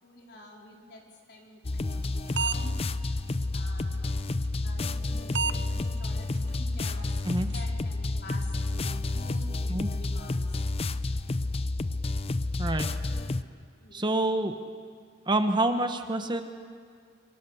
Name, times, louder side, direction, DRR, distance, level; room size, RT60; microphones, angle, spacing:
voice 1, 0.0-3.2 3.5-4.1 4.6-10.6 13.8-14.2, left 1 dB, 55° left, 0 dB, 4.0 m, -48 dB
sound 1, 1.6-13.4, left 2 dB, 30° left, 0.5 m, -30 dB
sound 2, 2.0-2.1 2.4-2.8 3.3-3.4 4.8-5.0 5.3-5.5 5.8-5.9 6.3-6.4 6.9-7.0 7.2-7.6, right 6 dB, 60° right, 0.7 m, -29 dB
sound 3, 5.9-8.8 9.1-9.2, equal, ahead, 6.6 m, -54 dB
voice 2, 13.9-14.5 15.3-16.4, right 2 dB, 25° right, 7 dB, 1.0 m, -27 dB
27.0 x 23.5 x 7.1 m, 2.1 s
head